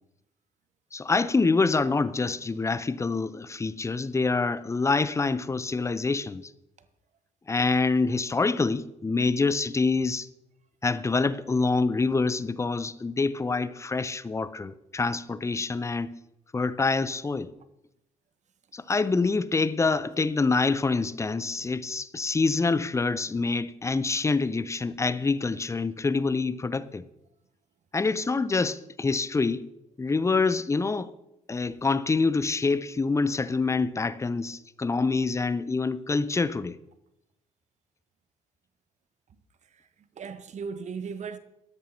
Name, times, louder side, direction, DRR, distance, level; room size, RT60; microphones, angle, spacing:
voice 1, 0.9-6.5 7.5-10.3 10.8-16.1 16.5-17.5 18.7-27.0 27.9-29.6 30.0-31.1 31.5-36.8, left 4 dB, 15° left, 0.6 m, -26 dB
voice 2, 39.7-41.4, right 5 dB, 40° right, 1.1 m, -37 dB
16.0 x 12.5 x 2.8 m
figure-of-eight pair, 45°, 18 cm